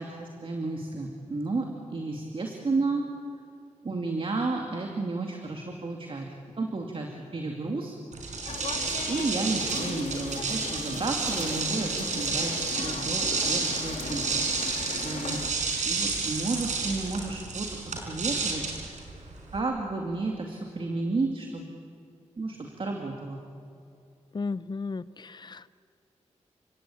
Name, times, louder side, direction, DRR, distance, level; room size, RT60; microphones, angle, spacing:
voice 1, 0.0-3.0 3.8-6.3 6.6-8.0 9.1-14.4 15.0-15.4 15.8-18.6 19.5-21.7 22.4-23.4, right 3 dB, 45° right, 2 dB, 2.5 m, -32 dB
sound 1, 8.1-19.6, right 4 dB, 80° right, 4.8 m, -31 dB
sound 2, 8.5-15.5, left 5 dB, 70° left, 2.0 m, -38 dB
voice 2, 24.3-25.8, left 4 dB, 35° left, 16 dB, 0.7 m, -35 dB
29.5 x 17.0 x 8.7 m, 2.5 s
cardioid pair, 70°, 12 cm